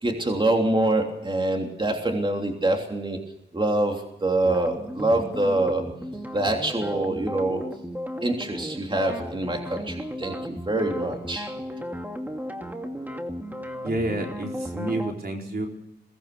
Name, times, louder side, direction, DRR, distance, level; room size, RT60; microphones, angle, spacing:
voice 1, 0.0-3.2 3.5-5.9 6.3-7.7 8.2-11.5, right 2 dB, 25° right, 2 dB, 3.2 m, -25 dB
sound 1, 4.4-15.1, equal, 10° right, 2.5 m, -35 dB
voice 2, 13.8-15.7, right 1 dB, 60° right, 1 dB, 4.4 m, -29 dB
23.0 x 19.0 x 6.8 m, 0.83 s
wide cardioid pair, 85°, 18 cm